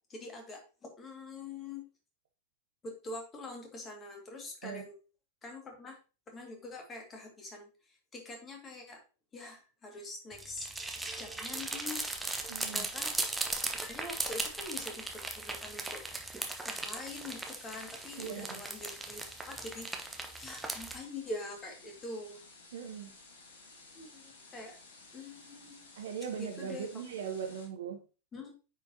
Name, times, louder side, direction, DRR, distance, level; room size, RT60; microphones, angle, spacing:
voice 1, 0.1-1.9 2.8-4.9 5.4-6.0 6.3-9.0 9.3-10.7 11.2-12.1 12.6-13.2 13.7-16.0 16.7-20.1 20.4-22.4 23.9-24.8 25.1-25.9 26.4-26.9 28.3-28.5, left 2 dB, 20° left, 2.0 m, -44 dB
sound 1, 10.3-21.0, right 2 dB, 5° right, 1.0 m, -38 dB
voice 2, 12.5-12.9 18.2-18.6 22.7-23.1 26.0-28.0, right 7 dB, 60° right, 1.1 m, -39 dB
sound 2, 16.6-27.7, left 3 dB, 60° left, 2.1 m, -56 dB
9.2 x 5.0 x 2.8 m
figure-of-eight pair, 90°, 0 cm